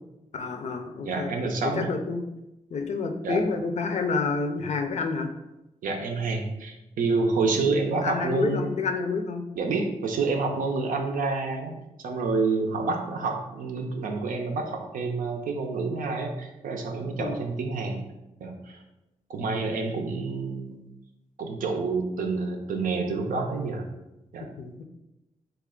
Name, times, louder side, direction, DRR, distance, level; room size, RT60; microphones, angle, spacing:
voice 1, 0.3-1.3 1.6-2.2 2.7-5.3 8.0-9.4 17.2-17.4 24.6-24.8, left 4 dB, 55° left, 5 dB, 0.4 m, -29 dB
voice 2, 1.0-1.9 3.2-3.4 5.8-8.7 9.6-11.7 12.0-18.0 18.4-18.8 19.3-20.8 21.4-23.9 24.3-24.5, right 3 dB, 85° right, 3 dB, 0.5 m, -28 dB
3.2 x 2.3 x 3.6 m, 0.94 s
cardioid pair, 75°, 14 cm